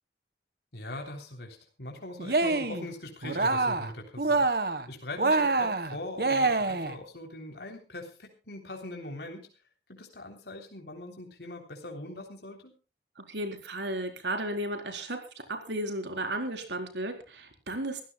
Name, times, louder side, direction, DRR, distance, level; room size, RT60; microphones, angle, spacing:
voice 1, 0.7-9.5 9.9-12.7, left 2 dB, 70° left, 2 dB, 3.4 m, -41 dB
Cheering, 2.2-2.9 3.2-4.8 5.2-7.0, right 3 dB, 60° right, 1.5 m, -26 dB
voice 2, 13.2-15.2 15.5-18.0, right 1 dB, 90° right, 4 dB, 4.3 m, -34 dB
24.0 x 15.5 x 2.3 m, 0.33 s
head